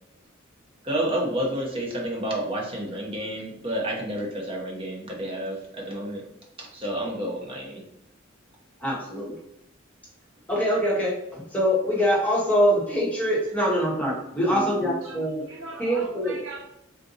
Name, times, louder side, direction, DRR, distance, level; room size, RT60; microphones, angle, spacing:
voice 1, 0.8-6.2 6.6-7.8, right 1 dB, 25° right, -1 dB, 0.8 m, -30 dB
voice 2, 8.8-9.4 10.5-15.5 15.8-16.4, equal, 10° left, -6 dB, 1.0 m, -24 dB
voice 3, 14.5-15.2 15.5-16.7, equal, 75° right, 1 dB, 0.6 m, -37 dB
3.7 x 2.5 x 2.7 m, 0.81 s
head